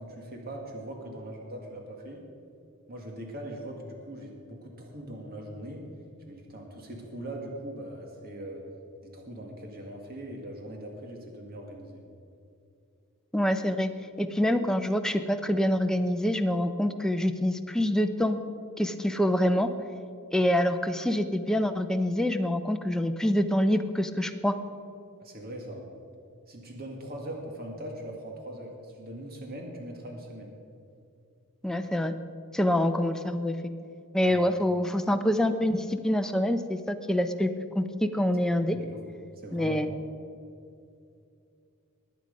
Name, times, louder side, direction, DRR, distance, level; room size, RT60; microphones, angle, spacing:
voice 1, 0.0-2.2 2.9-5.9 6.2-8.6 9.0-12.0 25.2-25.9 26.5-30.5 34.3-34.4 38.7-39.0 39.4-40.2, right 1 dB, 45° right, 1 dB, 1.9 m, -41 dB
voice 2, 13.3-13.9 14.2-18.4 18.8-19.7 20.3-24.6 31.6-32.1 32.5-33.6 34.1-37.5 37.7-38.8 39.5-39.9, left 1 dB, 5° left, 6 dB, 0.6 m, -26 dB
20.5 x 9.0 x 5.3 m, 2.6 s
head